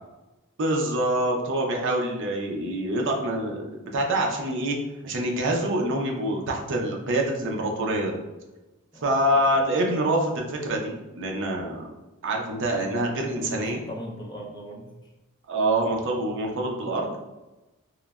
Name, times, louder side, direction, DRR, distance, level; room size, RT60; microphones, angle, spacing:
voice 1, 0.6-4.8 5.0-8.2 9.0-11.9 12.2-13.8 15.5-17.2, right 1 dB, 55° right, 1 dB, 0.5 m, -26 dB
voice 2, 8.9-9.5 13.4-15.1, equal, 20° left, -3 dB, 0.4 m, -39 dB
3.0 x 2.1 x 2.3 m, 1.1 s
head